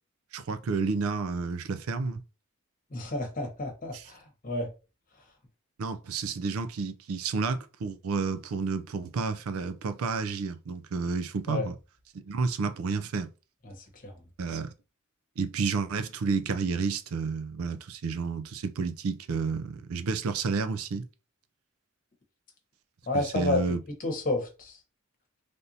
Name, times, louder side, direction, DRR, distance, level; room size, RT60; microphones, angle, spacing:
voice 1, 0.3-2.2 3.9-4.0 5.8-11.7 12.2-13.3 14.4-14.7 15.4-21.0 23.1-23.8, right 4 dB, 85° right, 0.4 m, -30 dB
voice 2, 2.9-4.7 11.5-11.7 13.6-14.1 23.1-23.7 24.0-24.8, left 2 dB, 40° left, 1.0 m, -31 dB
3.4 x 2.6 x 2.7 m
head